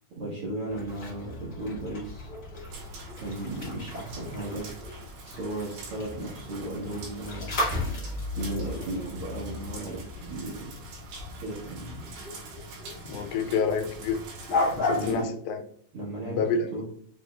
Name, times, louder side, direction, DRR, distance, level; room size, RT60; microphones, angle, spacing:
voice 1, 0.1-2.3 3.2-5.0 5.2-7.6 8.3-10.8 11.4-12.0 14.6-15.4 15.9-16.8, right 1 dB, 70° right, -6 dB, 1.3 m, -36 dB
sound 1, 0.7-15.1, left 2 dB, 35° left, 1.3 m, -35 dB
sound 2, 1.1-5.0, right 2 dB, 50° left, 1.8 m, -49 dB
sound 3, 2.7-15.2, right 4 dB, 90° right, 3.4 m, -46 dB
voice 2, 13.1-14.2 14.8-15.6 16.2-16.8, left 5 dB, 85° left, 5 dB, 2.5 m, -28 dB
6.8 x 3.0 x 2.3 m, 0.62 s
omnidirectional pair, 4.3 m